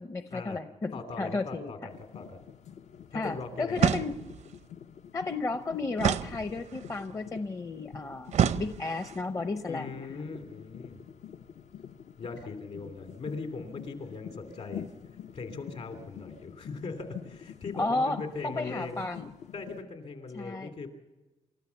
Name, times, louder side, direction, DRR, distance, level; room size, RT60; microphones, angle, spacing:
voice 1, 0.0-0.9 1.2-1.7 3.1-4.2 5.1-8.3 8.6-10.1 17.8-18.2 18.4-19.3 20.3-20.7, left 3 dB, 25° left, 9 dB, 0.6 m, -33 dB
voice 2, 0.9-2.4 3.1-4.0 9.6-11.0 12.2-15.0 15.3-19.0 19.5-20.9, left 4 dB, 60° left, 6 dB, 2.8 m, -40 dB
sound 1, 1.9-19.8, left 9 dB, 80° left, 0.9 m, -47 dB
sound 2, 3.8-4.5 6.0-6.9 8.3-9.2, right 8 dB, 80° right, 0.6 m, -28 dB
28.5 x 14.0 x 7.0 m, 1.1 s
wide cardioid pair, 175°, 12 cm